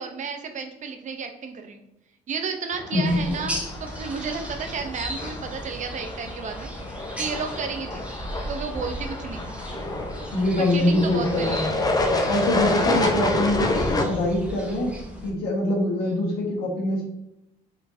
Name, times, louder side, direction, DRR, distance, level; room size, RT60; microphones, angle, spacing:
voice 1, 0.0-1.8 2.3-6.7 7.2-9.6 10.6-11.7 12.9-13.1 16.0-16.1, right 5 dB, 50° right, 6 dB, 0.8 m, -32 dB
sound 1, 2.7-14.0, left 2 dB, 25° left, 0.8 m, -29 dB
sound 2, 3.0-15.3, equal, 10° right, 1.4 m, -36 dB
voice 2, 10.3-11.7 12.3-15.0 15.2-17.0, left 1 dB, 80° left, -1 dB, 1.5 m, -24 dB
4.7 x 3.8 x 2.7 m, 0.85 s
supercardioid pair, 80°, 16 cm